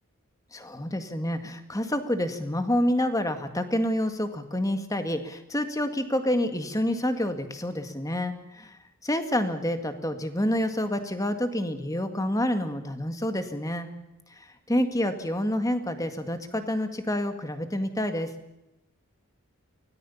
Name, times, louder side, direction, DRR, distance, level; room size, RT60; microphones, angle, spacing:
voice 1, 0.5-13.9 14.4-18.3, left 1 dB, 15° left, 8 dB, 1.9 m, -28 dB
24.5 x 18.5 x 7.1 m, 0.91 s
head